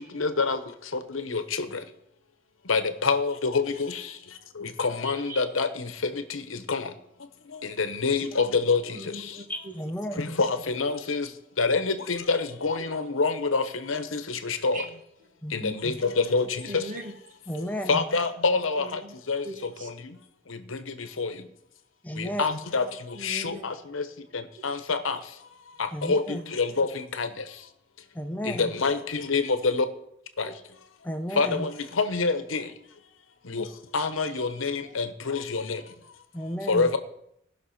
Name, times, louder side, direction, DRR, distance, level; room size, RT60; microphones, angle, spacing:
voice 1, 0.1-0.6 1.1-1.4 2.7-3.7 4.8-5.7 6.7-6.8 7.8-8.8 10.2-11.2 11.6-14.2 14.4-14.8 15.5-15.9 16.3-16.4 17.9-18.8 19.3-19.4 21.2-21.3 22.2-22.8 23.2-23.5 23.9-24.0 24.6-25.2 26.1-26.2 26.6-26.9 27.2-27.3 28.6-29.0 29.3-29.8 30.4-30.5 31.4-31.7 32.0-32.6 33.5-33.6 33.9-35.6 36.7-37.0, left 4 dB, 75° left, 10 dB, 1.1 m, -25 dB
voice 2, 5.0-5.4 8.9-9.7 14.7-14.9 16.7-17.1 18.8-19.1 19.4-19.9 23.2-23.6 24.6-24.7 30.4-30.5 31.4-31.5 33.5-33.7 34.3-34.4 34.9-35.0, right 1 dB, 40° right, 2 dB, 1.5 m, -40 dB
voice 3, 9.5-10.2 15.4-15.8 17.5-18.0 22.0-22.5 25.9-26.4 28.1-28.7 31.0-31.6 36.3-36.9, equal, 10° left, 6 dB, 0.6 m, -33 dB
17.5 x 6.0 x 5.8 m, 0.75 s
head